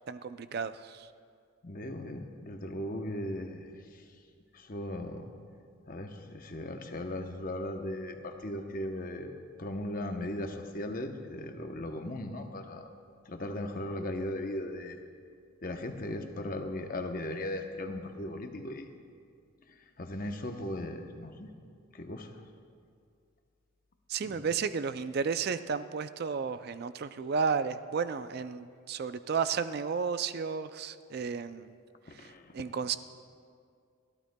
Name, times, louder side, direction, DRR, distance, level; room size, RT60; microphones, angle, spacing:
voice 1, 0.1-1.1 24.1-31.8 32.1-32.3 32.5-33.0, right 6 dB, 45° right, 12 dB, 0.3 m, -33 dB
voice 2, 1.6-3.7 4.5-5.3 5.9-9.3 9.6-12.9 13.3-15.0 15.6-18.9 20.0-21.5 21.9-22.3 24.2-24.5 32.1-32.5, left 1 dB, 40° left, 5 dB, 0.8 m, -37 dB
29.5 x 12.0 x 2.2 m, 2.3 s
head